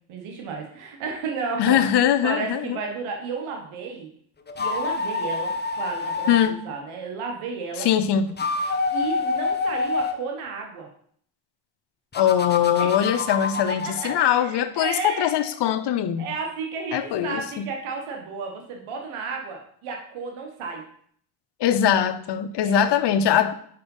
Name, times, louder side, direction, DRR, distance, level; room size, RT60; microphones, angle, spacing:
voice 1, 0.0-1.8 2.2-4.1 4.6-7.9 8.9-10.9 12.8-13.0 13.8-15.5 16.2-20.8 22.6-23.0 23.3-23.5, right 4 dB, 80° right, 1 dB, 1.5 m, -33 dB
voice 2, 1.6-2.8 6.3-6.6 7.8-8.4 12.1-16.3 16.9-17.7 21.6-23.5, left 9 dB, 55° left, 11 dB, 0.8 m, -22 dB
sound 1, 4.5-6.5 8.2-10.2 12.1-14.3, left 4 dB, 20° left, 0.8 m, -27 dB
5.5 x 5.2 x 5.4 m, 0.62 s
cardioid pair, 95°, 49 cm